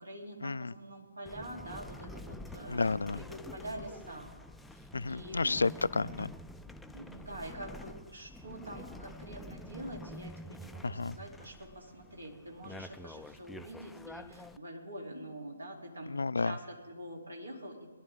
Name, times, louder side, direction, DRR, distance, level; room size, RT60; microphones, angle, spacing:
voice 1, 0.0-4.3 4.7-5.6 6.9-16.1 16.4-17.9, right 1 dB, 80° right, -1 dB, 3.3 m, -45 dB
sound 1, 1.3-14.6, left 1 dB, 5° left, 0.4 m, -48 dB
voice 2, 2.7-3.2 4.9-6.3 10.8-11.1 16.1-16.5, left 3 dB, 70° left, 19 dB, 0.3 m, -31 dB
22.0 x 11.5 x 3.7 m, 1.4 s
figure-of-eight pair, 135°, 0 cm